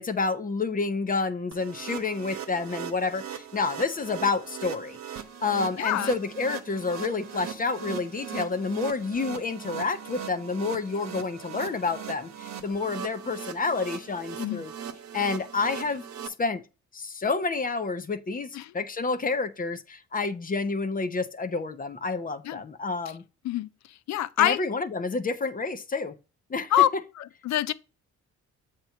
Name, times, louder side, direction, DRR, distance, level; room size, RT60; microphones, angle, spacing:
voice 1, 0.0-5.0 5.4-14.7 15.1-16.6 16.9-23.2 24.4-26.2 26.5-26.7, left 4 dB, 30° left, 0.7 m, -29 dB
sound 1, 1.5-16.3, right 8 dB, 60° right, 1.0 m, -39 dB
voice 2, 5.8-6.1 14.4-14.6 18.5-18.7 22.4-22.6 23.4-23.7 24.1-24.6 26.7-26.9 27.2-27.7, left 13 dB, 65° left, 0.5 m, -25 dB
7.6 x 3.0 x 5.7 m
cardioid pair, 90°, 30 cm